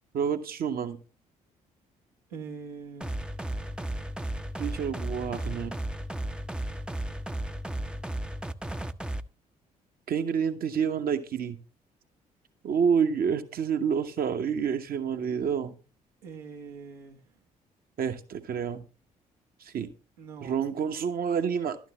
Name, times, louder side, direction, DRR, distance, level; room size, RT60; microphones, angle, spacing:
voice 1, 0.1-1.0 4.6-5.8 10.1-11.6 12.6-15.7 18.0-18.8 19.6-19.9 20.4-21.8, right 7 dB, 50° right, 1.2 m, -28 dB
voice 2, 2.3-3.2 16.2-17.2 20.2-20.6, right 5 dB, 80° right, 1.4 m, -43 dB
sound 1, 3.0-9.2, right 1 dB, 5° right, 0.6 m, -34 dB
12.0 x 9.4 x 3.1 m
figure-of-eight pair, 45°, 19 cm